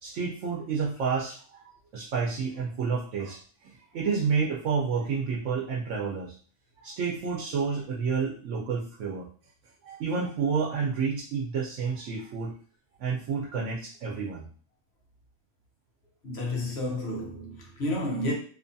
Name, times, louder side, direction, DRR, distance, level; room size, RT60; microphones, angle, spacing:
voice 1, 0.0-1.6 1.9-6.3 6.8-9.3 9.8-12.5 13.0-14.5, right 5 dB, 85° right, 1.0 m, -30 dB
voice 2, 16.2-18.3, left 1 dB, 65° left, 1.0 m, -31 dB
2.8 x 2.3 x 2.6 m
omnidirectional pair, 1.2 m